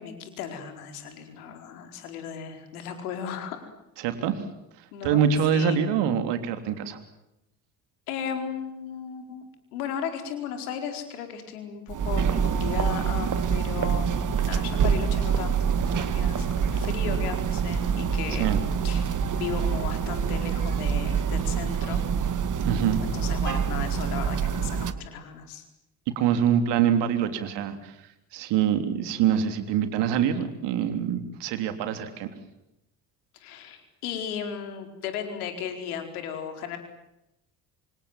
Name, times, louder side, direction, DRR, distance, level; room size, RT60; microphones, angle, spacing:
voice 1, 0.0-3.6 4.9-5.9 8.1-9.4 9.7-22.1 23.0-25.6 33.3-36.8, left 8 dB, 80° left, 6 dB, 4.7 m, -36 dB
voice 2, 4.0-4.4 5.0-7.0 18.4-18.6 22.6-23.0 26.2-27.9 28.3-32.3, right 8 dB, 65° right, 8 dB, 3.5 m, -25 dB
sound 1, 11.9-24.9, right 7 dB, 45° right, 2.2 m, -26 dB
28.0 x 26.5 x 7.6 m, 0.89 s
hypercardioid pair, 55°, 44 cm